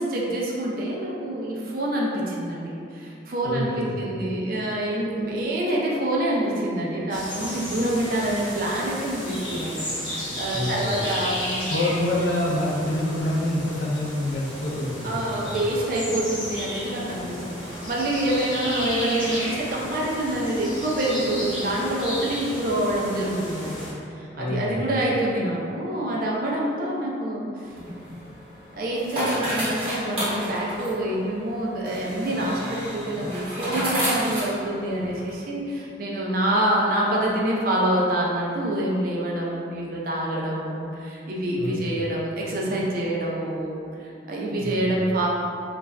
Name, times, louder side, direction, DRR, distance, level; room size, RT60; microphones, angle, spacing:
voice 1, 0.0-11.7 15.0-27.6 28.7-45.3, right 1 dB, 50° right, -4 dB, 0.4 m, -26 dB
voice 2, 3.4-4.2 10.5-11.0 11.7-15.6 24.3-24.9 41.6-42.0 44.6-45.0, left 1 dB, 65° left, -4 dB, 0.5 m, -27 dB
sound 1, 7.1-23.9, equal, 25° left, 0.7 m, -33 dB
sound 2, 27.6-35.3, equal, 30° right, 0.9 m, -31 dB
2.4 x 2.2 x 3.2 m, 2.5 s
head